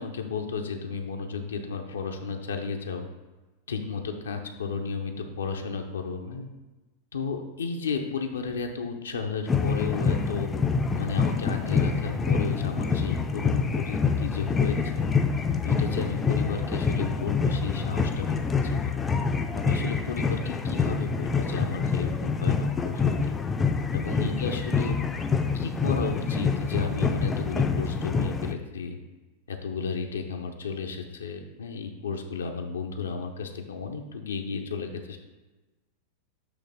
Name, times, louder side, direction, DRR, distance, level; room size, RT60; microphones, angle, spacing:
voice 1, 0.0-3.1 3.7-6.5 7.1-10.5 10.9-15.1 15.6-18.4 18.6-18.9 19.5-23.4 23.9-24.9 25.5-29.0 29.5-35.2, left 5 dB, 70° left, 4 dB, 0.7 m, -33 dB
sound 1, 9.5-28.5, left 5 dB, 15° left, 0.5 m, -26 dB
8.1 x 3.3 x 4.9 m, 1.2 s
figure-of-eight pair, 90°, 0 cm